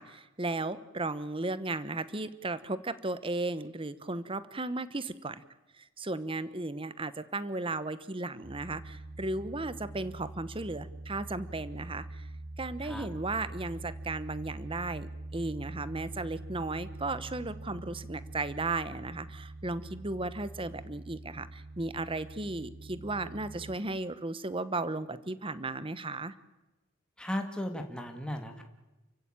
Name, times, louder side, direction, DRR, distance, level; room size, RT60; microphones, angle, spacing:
voice 1, 0.0-5.4 5.8-12.3 12.6-26.3, right 2 dB, 25° right, 15 dB, 1.1 m, -35 dB
sound 1, 8.4-23.8, right 2 dB, 80° right, 2.2 m, -44 dB
voice 2, 27.2-28.6, left 1 dB, 5° left, 4 dB, 2.2 m, -36 dB
29.5 x 16.0 x 9.0 m, 1.1 s
head